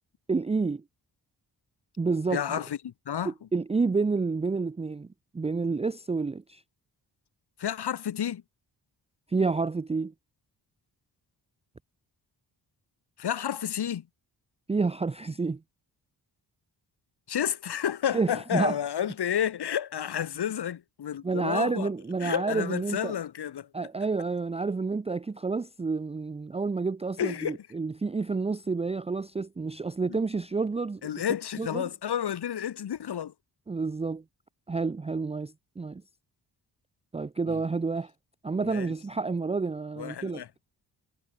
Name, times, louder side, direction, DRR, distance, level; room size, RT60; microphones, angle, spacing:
voice 1, 0.3-0.8 2.0-2.6 3.5-5.1 5.3-6.6 9.3-10.1 14.7-15.6 18.1-18.8 21.2-23.1 23.7-31.0 31.6-31.9 33.7-34.2 34.7-36.0 37.1-38.1 38.4-40.4, right 4 dB, 15° right, 0.5 m, -29 dB
voice 2, 2.3-3.3 7.6-8.4 13.2-14.1 17.3-21.9 22.2-23.7 27.2-27.7 30.1-30.2 31.0-33.3 37.5-37.6 38.6-38.9 40.0-40.5, left 9 dB, 75° left, 3.1 m, -31 dB
wide cardioid pair, 155°, 40 cm